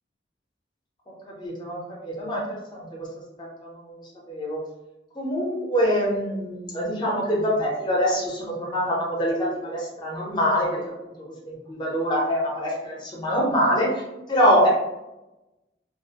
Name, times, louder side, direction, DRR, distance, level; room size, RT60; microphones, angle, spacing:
voice 1, 1.4-3.1 3.4-3.9 4.3-4.6 5.1-10.8 11.4-14.0 14.3-14.7, equal, 25° left, -4 dB, 0.6 m, -24 dB
2.4 x 2.1 x 2.8 m, 0.98 s
head